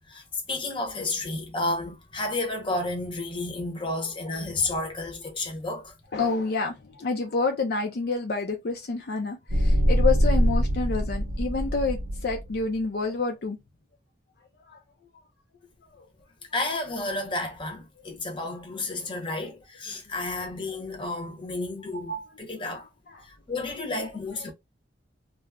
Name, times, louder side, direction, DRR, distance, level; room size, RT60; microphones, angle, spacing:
voice 1, 0.1-5.9 16.5-22.9 23.2-24.5, left 2 dB, 25° left, 0.7 m, -31 dB
voice 2, 6.1-13.6 14.6-14.8 16.0-16.1 24.4-24.5, left 4 dB, 55° left, 0.4 m, -28 dB
sound 1, 9.5-12.6, equal, 90° right, 0.8 m, -23 dB
2.3 x 2.0 x 3.4 m
head